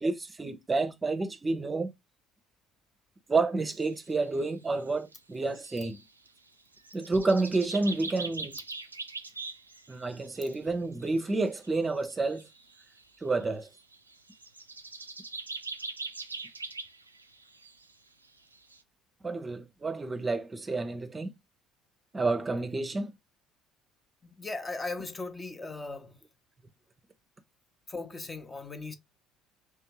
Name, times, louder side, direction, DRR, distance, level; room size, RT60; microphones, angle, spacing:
voice 1, 0.0-1.9 3.3-6.0 6.9-8.6 9.9-12.5 13.2-13.7 19.2-21.3 22.1-23.1, right 3 dB, 25° right, 0.7 m, -29 dB
sound 1, 3.7-4.5 4.7-4.8 5.1-5.2 5.4-6.4 6.7-10.6 11.0-13.0 13.3-17.9 18.2-18.3 18.5-18.8, right 3 dB, 90° right, 0.3 m, -42 dB
voice 2, 24.2-26.2 27.9-28.9, left 3 dB, 20° left, 0.8 m, -38 dB
3.4 x 3.4 x 3.0 m
figure-of-eight pair, 60°, 0 cm